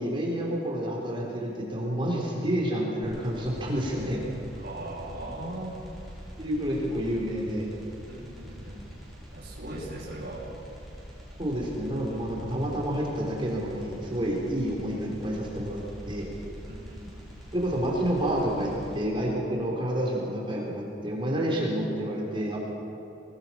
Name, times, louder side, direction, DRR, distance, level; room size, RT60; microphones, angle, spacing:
voice 1, 0.0-4.2 6.4-7.7 11.4-16.3 17.5-22.6, equal, 25° right, -3 dB, 3.9 m, -29 dB
sound 1, 3.0-19.0, equal, ahead, 7.3 m, -44 dB
voice 2, 4.5-5.8 8.1-8.8 9.3-10.5 16.7-17.1, right 1 dB, 55° right, -8 dB, 5.7 m, -39 dB
26.0 x 20.0 x 5.9 m, 2.9 s
head